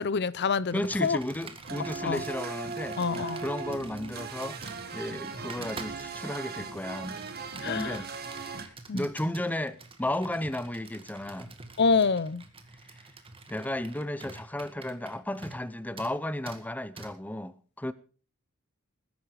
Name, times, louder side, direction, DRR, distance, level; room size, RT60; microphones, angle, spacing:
voice 1, 0.0-1.2 2.0-2.2 3.0-3.4 7.6-8.0 8.9-9.0 11.8-12.4, left 5 dB, 50° left, 0.6 m, -26 dB
voice 2, 0.7-4.6 4.9-7.2 7.6-8.1 8.6-11.5 12.9-13.1 13.5-17.9, left 1 dB, 5° left, 0.7 m, -34 dB
Computer keyboard, 0.7-15.7 16.0-16.1 16.5-16.6 17.0-17.1, right 3 dB, 25° right, 2.0 m, -47 dB
sound 1, 1.6-8.7, right 4 dB, 45° right, 1.7 m, -38 dB
20.0 x 10.5 x 4.9 m
head